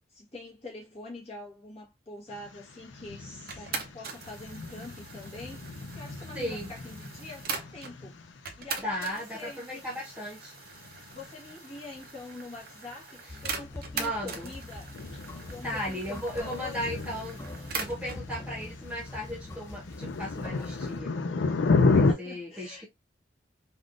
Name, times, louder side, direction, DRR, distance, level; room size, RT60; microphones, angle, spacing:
voice 1, 0.0-8.2 8.6-9.8 11.1-15.0 15.5-16.9 21.8-22.9, left 2 dB, 35° left, 1.2 m, -45 dB
sound 1, 2.3-22.1, left 3 dB, 80° left, 0.5 m, -33 dB
sound 2, 3.5-8.0 8.5-18.2, right 5 dB, 55° right, 0.6 m, -41 dB
voice 2, 6.3-6.7 8.8-10.5 13.9-14.5 15.6-17.4 17.7-21.1 21.9-22.9, equal, 5° right, 1.0 m, -36 dB
sound 3, 13.3-21.0, left 2 dB, 15° left, 0.3 m, -44 dB
3.4 x 2.4 x 2.4 m
head